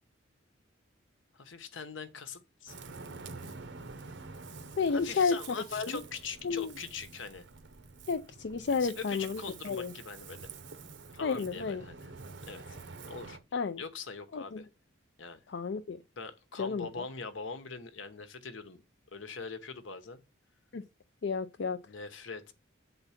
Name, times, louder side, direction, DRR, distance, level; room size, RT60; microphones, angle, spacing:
voice 1, 1.3-2.8 4.9-7.5 8.7-10.5 11.1-12.1 12.5-12.8 13.1-13.4 13.8-14.7 15.2-15.4 16.2-18.8 19.1-20.2 21.9-22.5, left 5 dB, 75° left, 1.0 m, -42 dB
Ocean, 2.7-13.4, right 4 dB, 65° right, 0.8 m, -48 dB
voice 2, 4.8-5.4 5.7-6.0 6.4-6.7 8.1-9.9 11.2-11.8 13.5-13.8 14.3-14.6 15.5-16.0 16.6-16.9 20.7-20.8 21.2-21.8, left 5 dB, 60° left, 0.4 m, -31 dB
8.0 x 3.9 x 5.7 m
head